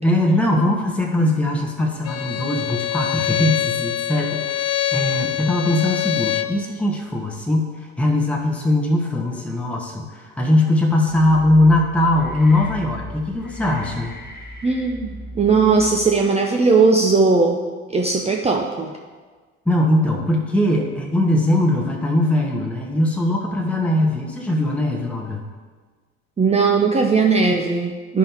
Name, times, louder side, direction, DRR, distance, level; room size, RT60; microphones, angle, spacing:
voice 1, 0.0-14.1 19.7-25.5, left 1 dB, 5° left, 0 dB, 1.0 m, -20 dB
Bowed string instrument, 2.0-6.6, left 12 dB, 40° left, 0.5 m, -24 dB
sound 1, 11.0-16.3, equal, 25° left, 1.2 m, -38 dB
voice 2, 14.6-15.1 15.4-17.6 17.9-18.9 26.4-28.2, right 4 dB, 15° right, 1 dB, 0.6 m, -18 dB
11.0 x 5.3 x 2.9 m, 1.4 s
figure-of-eight pair, 60°, 39 cm